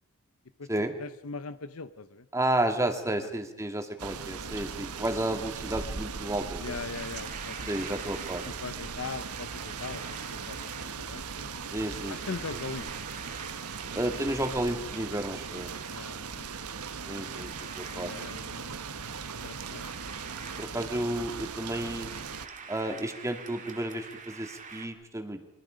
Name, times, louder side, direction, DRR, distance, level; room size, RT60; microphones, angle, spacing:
voice 1, 1.0-2.3 3.2-3.3 6.6-7.9 8.4-11.6 12.1-12.9 15.9-16.5 17.9-18.7 19.4-19.9, left 4 dB, 70° left, 11 dB, 0.9 m, -40 dB
voice 2, 2.3-6.8 7.7-8.5 11.7-12.6 13.9-15.7 17.1-18.1 20.6-22.1 22.7-25.4, right 1 dB, 15° right, 6 dB, 2.2 m, -32 dB
sound 1, 4.0-22.5, right 5 dB, 90° right, 1.2 m, -39 dB
sound 2, 6.9-24.9, right 5 dB, 35° right, 2.3 m, -47 dB
29.5 x 24.0 x 5.2 m, 0.92 s
head